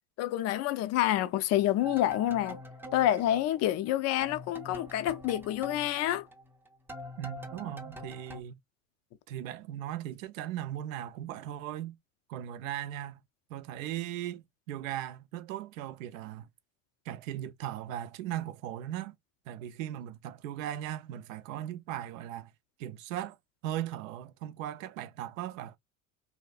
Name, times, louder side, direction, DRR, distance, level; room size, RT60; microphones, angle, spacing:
voice 1, 0.2-2.6 2.9-6.3, left 13 dB, 40° left, 0.5 m, -28 dB
sound 1, 1.8-3.9 4.2-8.4, equal, 5° right, 0.5 m, -45 dB
voice 2, 7.2-8.6 9.3-12.0 12.3-13.2 13.5-16.5 17.1-19.2 19.5-22.5 22.8-23.4 23.6-25.8, right 12 dB, 70° right, 0.6 m, -38 dB
2.8 x 2.3 x 2.3 m
hypercardioid pair, 85°, 41 cm